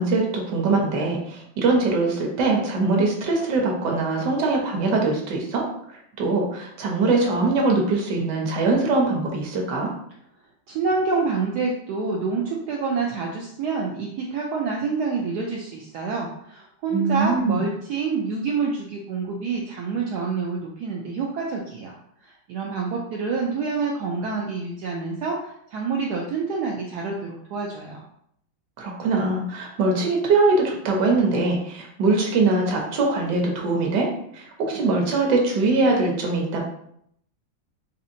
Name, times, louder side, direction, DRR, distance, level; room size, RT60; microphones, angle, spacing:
voice 1, 0.0-5.7 6.2-9.9 16.9-17.6 28.8-34.1 34.3-36.6, right 3 dB, 65° right, 0 dB, 1.3 m, -22 dB
voice 2, 10.7-22.0 22.2-28.0, right 4 dB, 90° right, -1 dB, 0.8 m, -27 dB
4.1 x 2.7 x 2.6 m, 0.70 s
omnidirectional pair, 2.3 m